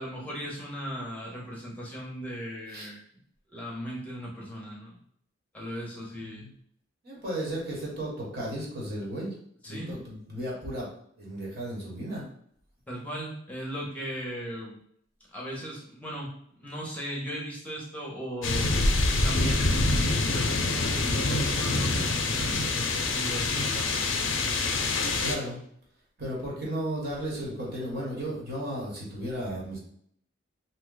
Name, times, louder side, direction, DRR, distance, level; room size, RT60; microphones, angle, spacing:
voice 1, 0.0-3.0 3.5-5.0 5.5-6.5 9.6-9.9 12.9-14.8 15.3-18.7 19.2-24.2, equal, 10° left, -3 dB, 0.6 m, -37 dB
voice 2, 6.2-6.5 7.0-9.3 9.6-10.9 11.2-12.2 25.2-25.6 26.2-29.8, right 1 dB, 55° right, -4 dB, 1.2 m, -34 dB
sound 1, 18.4-25.3, left 2 dB, 90° left, 0.5 m, -26 dB
2.8 x 2.1 x 3.8 m, 0.67 s
head